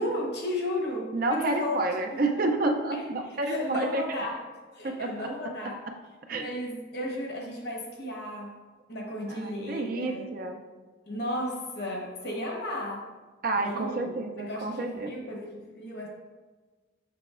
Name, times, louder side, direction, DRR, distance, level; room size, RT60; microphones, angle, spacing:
voice 1, 0.0-1.8 2.1-2.5 2.9-4.4 4.7-5.8 6.3-8.6 8.9-10.2 11.1-13.1 13.6-14.1 14.4-16.1, left 1 dB, 55° left, -1 dB, 1.1 m, -34 dB
voice 2, 1.1-4.0 4.8-5.3 6.3-6.5 9.3-10.6 13.4-15.1, right 2 dB, 45° right, 4 dB, 0.5 m, -29 dB
6.8 x 5.6 x 2.5 m, 1.3 s
head